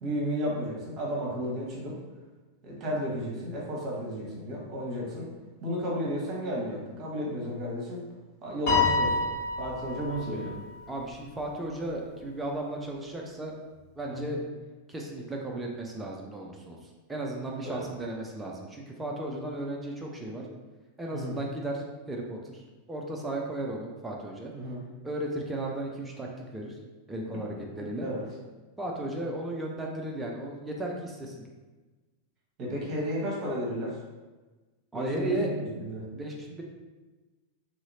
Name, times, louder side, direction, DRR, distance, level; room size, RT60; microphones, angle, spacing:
voice 1, 0.0-2.0 2.6-5.3 5.6-8.0 8.4-9.3 9.6-10.5 14.1-14.3 17.6-17.9 21.1-21.4 24.5-24.8 27.8-28.2 32.6-34.0 34.9-36.0, equal, 35° right, -3 dB, 1.0 m, -33 dB
Piano, 8.7-11.1, left 4 dB, 45° left, 1.3 m, -28 dB
voice 2, 10.9-13.5 14.0-14.4 14.9-16.8 17.1-20.4 21.0-24.5 25.0-26.3 26.5-26.7 27.1-28.1 28.8-31.4 34.9-35.5 36.1-36.6, right 1 dB, 10° right, -2 dB, 0.4 m, -35 dB
2.8 x 2.7 x 2.7 m, 1.2 s
figure-of-eight pair, 90°, 0 cm